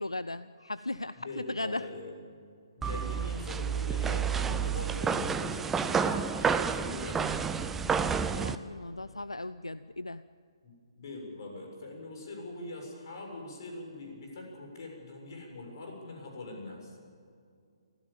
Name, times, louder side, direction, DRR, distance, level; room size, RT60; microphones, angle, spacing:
voice 1, 0.0-1.8 8.3-10.2, left 2 dB, 80° left, 15 dB, 0.5 m, -37 dB
voice 2, 1.1-2.2 2.8-7.4 10.6-17.0, left 2 dB, 45° left, 2 dB, 7.0 m, -42 dB
sound 1, 2.8-8.6, right 6 dB, 10° right, 0.6 m, -30 dB
24.5 x 16.0 x 7.3 m, 2.3 s
figure-of-eight pair, 135°, 3 cm